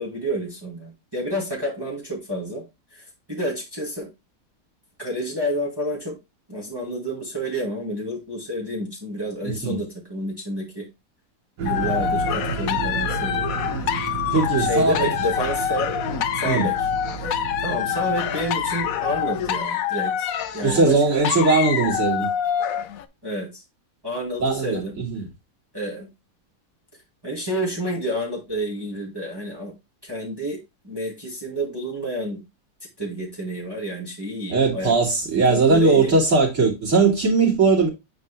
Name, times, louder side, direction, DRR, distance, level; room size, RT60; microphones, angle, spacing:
voice 1, 0.0-2.6 2.9-4.1 5.0-6.2 6.5-10.9 11.6-13.5 14.6-15.9 16.4-16.8 17.2-21.2 23.2-23.6 24.0-25.0 25.7-26.1 27.2-29.7 30.0-32.4 33.0-34.9 35.3-36.2, equal, 15° right, 2.0 m, -29 dB
voice 2, 9.4-9.8 14.3-15.2 16.4-16.7 20.6-22.3 24.4-25.3 34.5-37.9, right 3 dB, 50° right, 2.9 m, -19 dB
sound 1, 11.6-19.6, right 5 dB, 85° right, 1.8 m, -32 dB
sound 2, 11.7-23.1, left 9 dB, 65° left, 1.0 m, -26 dB
8.9 x 4.0 x 3.4 m
omnidirectional pair, 1.7 m